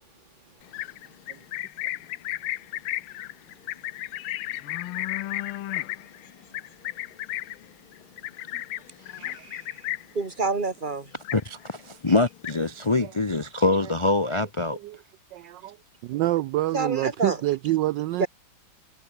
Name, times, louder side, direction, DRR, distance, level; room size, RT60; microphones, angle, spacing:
Livestock farm animals working animals, 0.6-10.2 10.6-10.9 11.1-11.8 12.1-12.8, left 14 dB, 85° left, 1.6 m, -34 dB
voice 1, 9.2-9.9 10.1-11.1 16.7-17.4 18.2-18.3, right 3 dB, 25° right, 1.9 m, -28 dB
voice 2, 11.3-14.8, left 2 dB, 35° left, 0.4 m, -24 dB
voice 3, 15.3-15.8 16.0-18.3, right 16 dB, 75° right, 1.1 m, -27 dB
omnidirectional pair, 2.3 m